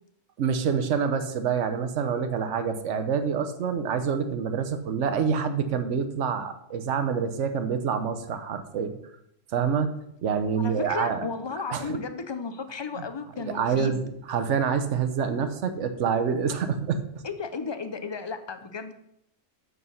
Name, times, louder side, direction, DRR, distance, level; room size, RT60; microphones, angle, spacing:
voice 1, 0.4-8.9 9.5-9.9 10.2-11.3 11.7-12.0 13.4-17.2, right 6 dB, 70° right, 9 dB, 1.1 m, -27 dB
voice 2, 10.6-14.0 17.2-18.9, left 5 dB, 35° left, 9 dB, 0.4 m, -34 dB
8.2 x 6.4 x 5.5 m, 0.77 s
omnidirectional pair, 1.3 m